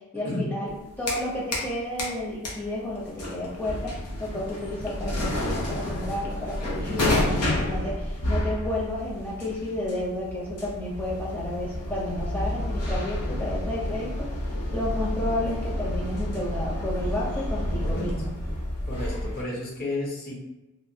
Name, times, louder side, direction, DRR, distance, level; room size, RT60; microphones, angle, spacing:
voice 1, 0.1-0.7 1.0-14.3 14.7-18.4, left 1 dB, 10° left, -5 dB, 0.6 m, -31 dB
sound 1, 0.7-1.7 2.0-19.4, left 1 dB, 90° left, 0.7 m, -30 dB
voice 2, 6.8-7.5 17.7-18.1 18.8-20.3, left 1 dB, 40° left, -4 dB, 0.8 m, -33 dB
3.2 x 2.2 x 2.7 m, 1.0 s
head